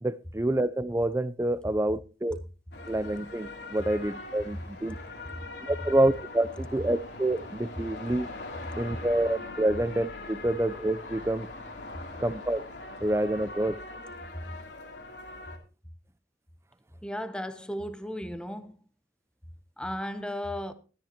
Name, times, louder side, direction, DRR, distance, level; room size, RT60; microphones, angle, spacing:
voice 1, 0.0-2.4 2.9-5.0 5.7-8.3 8.8-11.5 12.2-12.7 13.0-13.8, right 1 dB, 15° right, 0.4 m, -27 dB
sound 1, 2.7-15.6, left 2 dB, 75° left, 2.8 m, -42 dB
voice 2, 17.0-18.8 19.8-20.7, equal, 5° left, 0.8 m, -35 dB
13.5 x 13.0 x 2.9 m
head